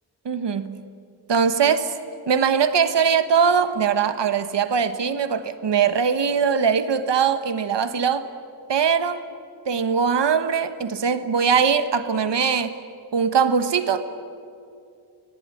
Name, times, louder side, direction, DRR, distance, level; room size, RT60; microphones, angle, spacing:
voice 1, 0.2-0.8 1.3-1.9 2.3-8.2 8.7-9.2 9.7-12.7 13.1-14.0, right 6 dB, 85° right, 11 dB, 1.4 m, -21 dB
29.5 x 19.0 x 10.0 m, 2.5 s
wide cardioid pair, 175°, 41 cm